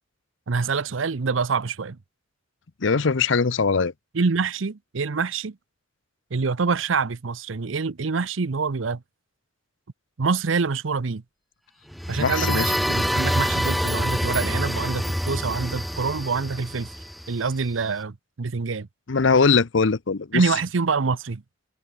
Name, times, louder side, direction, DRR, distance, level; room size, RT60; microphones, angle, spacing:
voice 1, 0.5-2.0 4.1-5.6 6.3-9.0 10.2-11.2 12.1-16.9 17.3-18.9 20.3-21.4, right 4 dB, 80° right, 0.7 m, -26 dB
voice 2, 2.8-3.9 12.2-12.6 19.1-20.4, left 4 dB, 70° left, 0.7 m, -21 dB
sound 1, 11.9-17.6, equal, ahead, 0.4 m, -26 dB
head